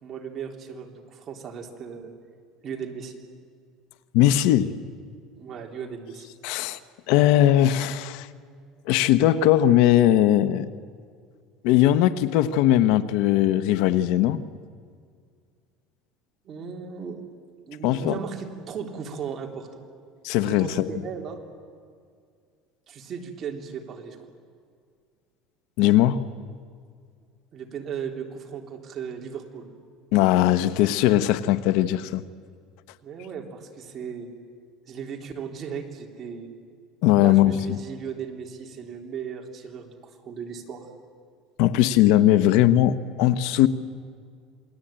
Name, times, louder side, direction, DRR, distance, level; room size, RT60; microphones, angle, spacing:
voice 1, 0.0-2.1 2.6-3.2 5.3-6.3 16.4-17.2 17.7-19.7 20.4-21.4 22.9-24.2 27.5-29.7 33.0-34.3 34.9-36.5 37.2-40.9, right 6 dB, 35° right, 2 dB, 3.3 m, -36 dB
voice 2, 4.1-4.7 6.4-6.8 7.1-8.3 8.9-10.7 11.6-14.4 17.8-18.2 20.2-20.9 25.8-26.2 30.1-32.2 37.0-37.8 41.6-43.7, left 13 dB, 70° left, 13 dB, 1.0 m, -19 dB
28.0 x 20.5 x 8.9 m, 2.1 s
cardioid pair, 145°, 0 cm